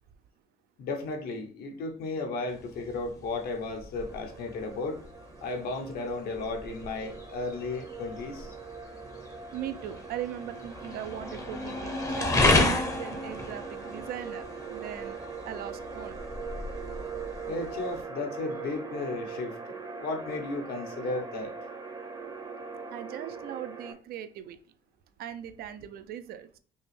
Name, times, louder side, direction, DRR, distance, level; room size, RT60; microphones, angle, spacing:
voice 1, 0.8-5.0 5.4-8.5 17.5-21.5, left 3 dB, 65° left, 0.9 m, -34 dB
sound 1, 2.5-18.0, left 2 dB, 20° left, 0.7 m, -33 dB
sound 2, 4.0-23.9, right 5 dB, 25° right, 0.7 m, -41 dB
voice 2, 9.5-12.3 12.9-15.2 15.5-16.2 22.9-24.6 25.2-26.6, right 11 dB, 65° right, 0.4 m, -39 dB
5.4 x 2.0 x 3.1 m
cardioid pair, 110°, 17 cm